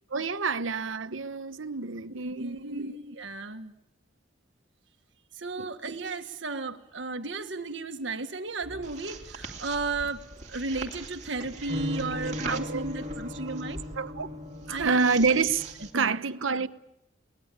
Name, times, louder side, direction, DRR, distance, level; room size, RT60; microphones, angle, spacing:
voice 1, 0.1-2.9 5.6-5.7 12.5-12.8 14.0-14.3 14.8-15.7 15.9-16.7, right 4 dB, 85° right, 1.0 m, -27 dB
voice 2, 2.2-3.7 5.3-13.8 14.7-15.1 15.9-16.2, right 3 dB, 70° right, 1.7 m, -34 dB
sound 1, 8.6-15.9, equal, 35° right, 2.7 m, -38 dB
23.0 x 19.5 x 8.6 m
head